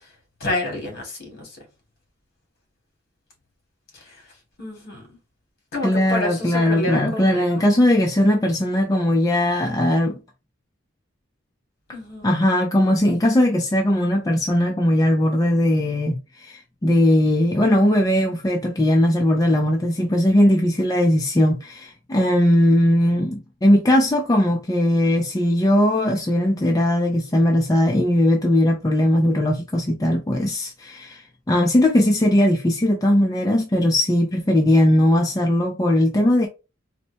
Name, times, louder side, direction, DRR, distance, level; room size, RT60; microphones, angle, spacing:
voice 1, 0.4-1.5 4.6-5.0 5.7-7.4 11.9-12.3, left 1 dB, 50° left, 1.8 m, -28 dB
voice 2, 5.8-10.2 12.2-36.5, left 1 dB, 20° left, 0.4 m, -19 dB
4.1 x 2.1 x 2.7 m
head